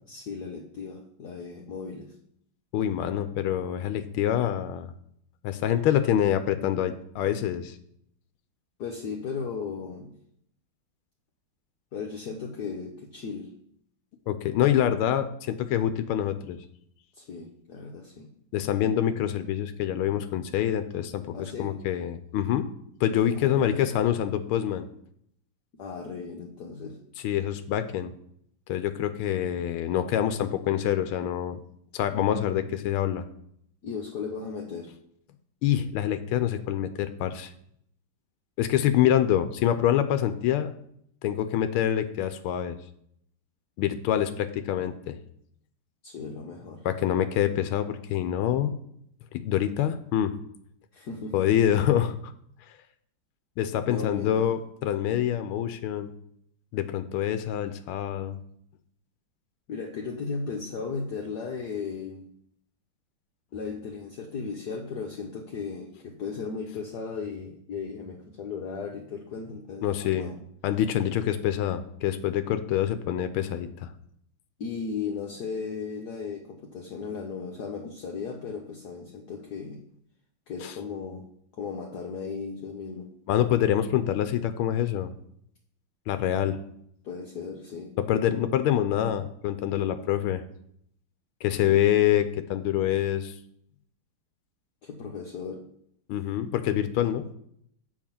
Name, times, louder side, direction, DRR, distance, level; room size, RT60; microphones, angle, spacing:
voice 1, 0.1-2.1 8.8-10.1 11.9-13.5 17.1-18.3 21.3-21.7 23.3-24.1 25.7-27.0 33.8-34.9 46.0-46.9 50.9-51.4 53.8-54.6 59.7-62.3 63.5-70.4 74.6-79.8 80.5-81.2 81.5-83.1 87.0-87.9 91.7-91.8 94.8-95.6, left 5 dB, 60° left, 1 dB, 1.2 m, -36 dB
voice 2, 2.7-4.9 5.4-7.7 14.3-16.6 18.5-22.7 23.0-24.9 27.2-28.1 28.7-31.6 31.9-33.2 35.6-37.5 38.6-40.7 41.2-42.8 43.8-45.2 46.8-48.8 49.3-50.4 51.3-52.1 53.6-56.1 56.7-58.4 69.8-70.3 70.6-73.9 80.6-80.7 83.3-85.1 86.1-86.6 88.0-90.4 91.4-93.3 96.1-97.3, left 10 dB, 90° left, 10 dB, 1.5 m, -26 dB
7.2 x 5.2 x 5.8 m, 0.69 s
omnidirectional pair, 2.3 m